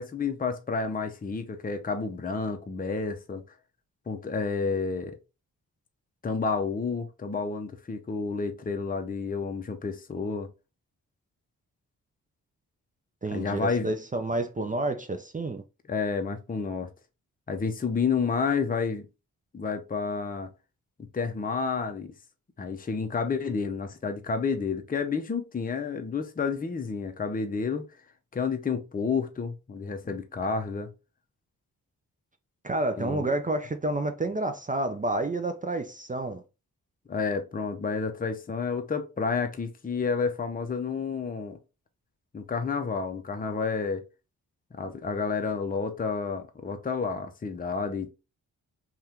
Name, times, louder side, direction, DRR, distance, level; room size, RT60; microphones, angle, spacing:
voice 1, 0.0-3.4 4.1-5.2 6.2-10.5 13.3-13.9 15.9-16.9 17.5-19.1 19.5-20.5 21.1-22.1 22.6-27.8 28.3-30.9 33.0-33.3 37.1-41.6 42.3-44.1 44.7-48.1, left 5 dB, 25° left, 0.6 m, -30 dB
voice 2, 13.2-15.6 32.6-36.4, right 2 dB, 20° right, 0.5 m, -29 dB
2.7 x 2.4 x 3.4 m
supercardioid pair, 45°, 38 cm